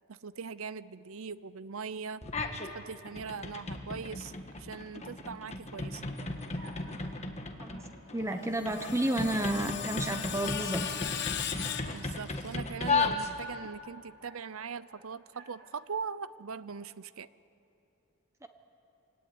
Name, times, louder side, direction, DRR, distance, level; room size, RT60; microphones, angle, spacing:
voice 1, 0.1-2.2 2.7-6.0 11.9-17.3, right 5 dB, 75° right, 16 dB, 0.7 m, -40 dB
sound 1, 2.2-2.7 3.1-13.7, left 3 dB, 30° left, 1.4 m, -36 dB
sound 2, 6.1-7.2 7.7-7.9 8.4-9.2 10.3-11.1 11.5-12.1 12.9-15.0 15.3-15.7, right 2 dB, 55° right, 3.5 m, -55 dB
voice 2, 8.1-10.8 18.4-18.5, right 1 dB, 15° right, 6 dB, 1.1 m, -31 dB
Screech, 8.3-12.6, left 9 dB, 50° left, 1.1 m, -38 dB
25.0 x 17.5 x 9.5 m, 2.7 s
head